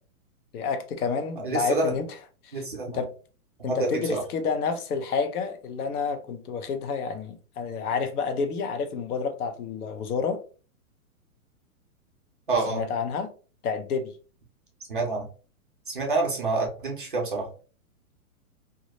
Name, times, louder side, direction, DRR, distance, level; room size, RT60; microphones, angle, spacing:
voice 1, 0.5-2.1 2.4-3.1 3.6-10.4 12.7-13.3 13.6-14.1, left 5 dB, 85° left, 0.7 m, -29 dB
voice 2, 1.4-1.9 2.5-3.0 3.6-4.2 12.5-12.8 14.9-15.3 15.9-17.5, right 3 dB, 40° right, 0.4 m, -27 dB
2.3 x 2.0 x 2.7 m
hypercardioid pair, 180°, 44 cm